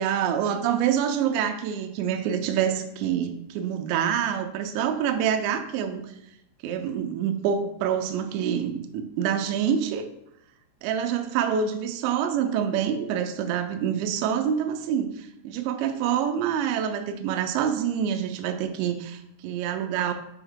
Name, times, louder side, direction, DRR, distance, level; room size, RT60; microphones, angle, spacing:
voice 1, 0.0-6.1 6.6-10.1 10.8-20.1, right 8 dB, 85° right, 6 dB, 2.7 m, -26 dB
6.9 x 4.6 x 3.6 m, 0.79 s
omnidirectional pair, 5.4 m